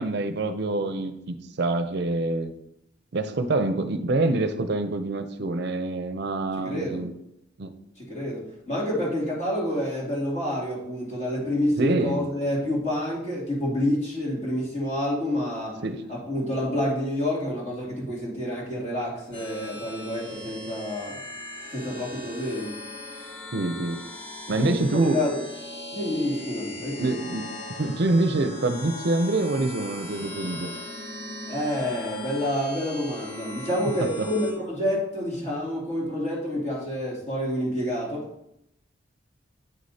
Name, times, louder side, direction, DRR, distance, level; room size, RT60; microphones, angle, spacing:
voice 1, 0.0-2.5 3.1-7.1 7.6-7.7 11.8-12.2 15.8-16.0 23.5-24.0 24.5-25.2 27.0-27.5 27.8-30.7, right 2 dB, 60° right, 9 dB, 0.6 m, -26 dB
voice 2, 6.6-7.0 8.0-8.4 8.7-15.8 16.1-21.2 21.7-22.7 24.6-25.4 25.9-27.1 31.5-38.3, left 1 dB, 40° left, -5 dB, 2.7 m, -28 dB
sound 1, 19.3-34.5, left 2 dB, 65° left, 2.4 m, -39 dB
8.8 x 6.4 x 2.8 m, 0.79 s
head